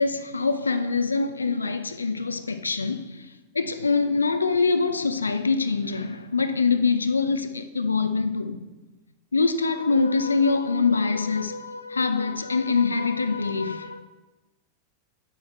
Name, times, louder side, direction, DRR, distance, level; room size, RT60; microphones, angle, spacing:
voice 1, 0.0-8.7 9.3-14.1, left 4 dB, 75° left, 0.4 m, -24 dB
7.9 x 6.4 x 3.2 m
figure-of-eight pair, 90°, 0 cm